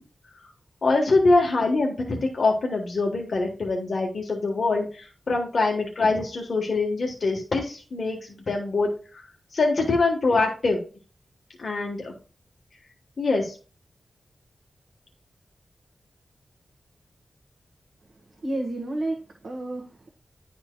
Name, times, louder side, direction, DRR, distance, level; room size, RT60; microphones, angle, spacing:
voice 1, 0.8-8.2 8.5-8.9 9.5-10.8 11.6-12.1 13.2-13.5, left 3 dB, 55° left, 1 dB, 1.2 m, -24 dB
voice 2, 18.4-20.1, right 2 dB, 65° right, 0 dB, 1.3 m, -31 dB
11.0 x 4.3 x 2.2 m, 0.37 s
wide cardioid pair, 135°, 0 cm